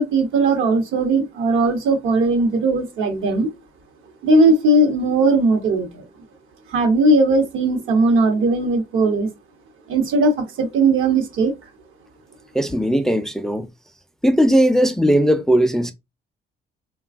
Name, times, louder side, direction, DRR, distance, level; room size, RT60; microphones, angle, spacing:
voice 1, 0.0-3.5 4.2-5.9 6.7-9.3 9.9-10.3 10.6-11.5, right 2 dB, 85° right, 1.0 m, -18 dB
voice 2, 12.5-13.7 14.2-15.9, equal, ahead, 0.4 m, -18 dB
3.2 x 2.3 x 2.4 m
cardioid pair, 90°, 20 cm